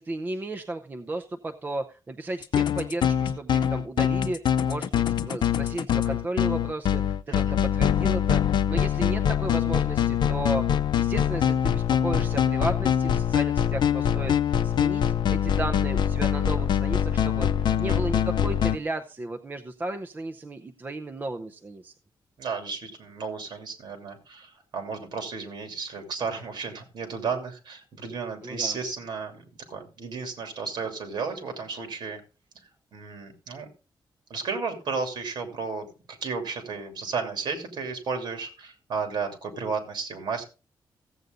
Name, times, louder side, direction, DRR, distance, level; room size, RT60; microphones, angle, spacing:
voice 1, 0.0-21.9 28.4-28.8, right 2 dB, 20° right, 6 dB, 0.6 m, -34 dB
sound 1, 2.4-18.8, left 9 dB, 65° left, 0.6 m, -24 dB
voice 2, 17.7-18.0 22.4-29.4 29.7-32.2 32.9-33.7 34.3-40.4, right 5 dB, 60° right, 5 dB, 2.9 m, -33 dB
15.0 x 8.1 x 3.8 m, 0.32 s
wide cardioid pair, 180°, 8 cm